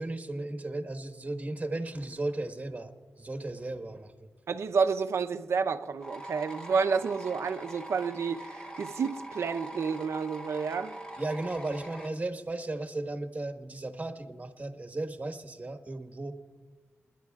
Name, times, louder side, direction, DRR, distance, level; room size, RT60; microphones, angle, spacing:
voice 1, 0.0-4.3 11.2-16.3, right 2 dB, 35° right, 1.4 m, -35 dB
voice 2, 4.5-11.0, right 5 dB, 85° right, 0.7 m, -30 dB
sound 1, 6.0-12.1, right 1 dB, 20° left, 1.6 m, -43 dB
29.0 x 11.0 x 2.4 m
cardioid pair, 65°, 5 cm